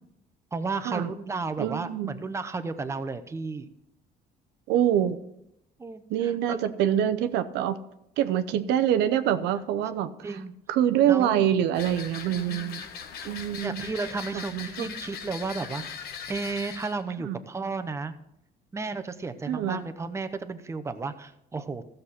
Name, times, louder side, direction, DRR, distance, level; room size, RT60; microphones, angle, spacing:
voice 1, 0.5-3.7 5.8-6.7 10.2-10.5 11.1-11.5 12.5-13.0 13.6-15.8 16.3-18.1 18.7-21.8, right 4 dB, 15° right, 9 dB, 0.7 m, -33 dB
voice 2, 1.6-2.1 4.7-5.2 6.1-7.8 8.2-10.3 10.7-12.8 13.2-13.8 14.3-14.9 17.2-17.4 19.5-19.8, right 10 dB, 90° right, 11 dB, 0.7 m, -25 dB
sound 1, 11.7-17.0, left 7 dB, 65° left, 0.9 m, -40 dB
14.0 x 6.6 x 4.3 m, 0.80 s
cardioid pair, 110°, 17 cm